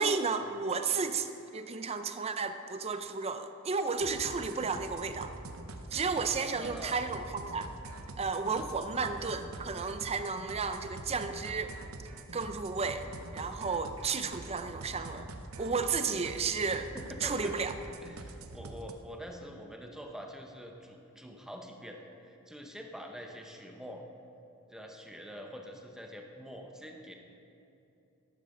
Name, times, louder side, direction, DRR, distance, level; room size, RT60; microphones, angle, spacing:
voice 1, 0.0-5.3 5.9-7.7 8.2-11.7 12.3-15.3 15.6-16.9 17.2-17.7, right 4 dB, 30° right, 9 dB, 0.5 m, -33 dB
sound 1, 4.0-18.9, right 2 dB, 65° right, 0.8 m, -45 dB
voice 2, 6.3-7.0 8.5-8.7 16.9-17.8 18.0-24.0 24.7-27.1, equal, ahead, 2 dB, 0.8 m, -46 dB
14.0 x 12.0 x 3.8 m, 2.9 s
head